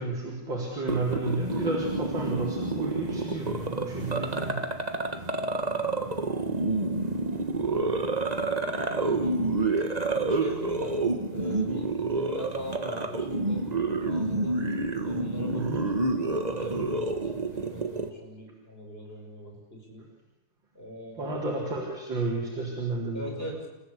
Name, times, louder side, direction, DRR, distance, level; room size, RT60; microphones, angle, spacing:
voice 1, 0.0-4.7 15.5-15.8 21.2-23.3, right 2 dB, 70° right, -2 dB, 4.7 m, -32 dB
sound 1, 0.9-18.1, right 3 dB, 25° right, 1.6 m, -29 dB
voice 2, 5.1-6.5 7.6-8.2 8.6-9.4 10.2-11.0 11.3-13.7 13.9-14.6 15.0-15.7 16.1-20.1 20.7-21.4 23.1-23.7, equal, 30° left, 1 dB, 6.3 m, -41 dB
30.0 x 15.0 x 8.4 m, 1.1 s
omnidirectional pair, 2.1 m